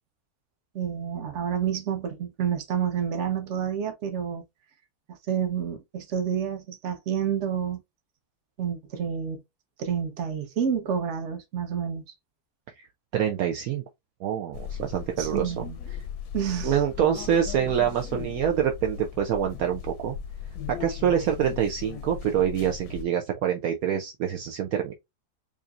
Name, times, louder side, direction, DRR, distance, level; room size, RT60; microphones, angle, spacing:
voice 1, 0.7-4.4 5.1-7.8 8.6-9.4 9.8-12.0 15.2-15.8 16.3-16.8, right 8 dB, 55° right, 1.1 m, -29 dB
voice 2, 13.1-13.8 14.2-15.6 16.6-20.2 20.7-24.9, right 9 dB, 70° right, 1.0 m, -26 dB
sound 1, 14.5-23.0, left 8 dB, 80° left, 1.2 m, -37 dB
5.0 x 2.6 x 2.4 m
omnidirectional pair, 1.6 m